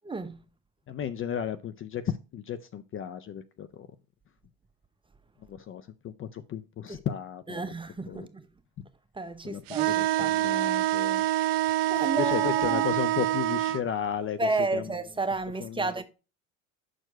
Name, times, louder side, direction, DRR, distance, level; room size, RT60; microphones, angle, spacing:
voice 1, 0.0-0.4 7.5-8.4 9.2-10.4 11.9-12.9 14.4-16.0, right 3 dB, 15° right, 0.8 m, -31 dB
voice 2, 0.9-3.9 5.5-7.6 8.1-8.3 9.4-11.2 12.2-14.9 15.6-16.0, left 8 dB, 35° left, 0.5 m, -34 dB
sound 1, 9.7-13.8, right 14 dB, 80° right, 0.5 m, -26 dB
6.3 x 4.5 x 4.5 m
hypercardioid pair, 80°, 37 cm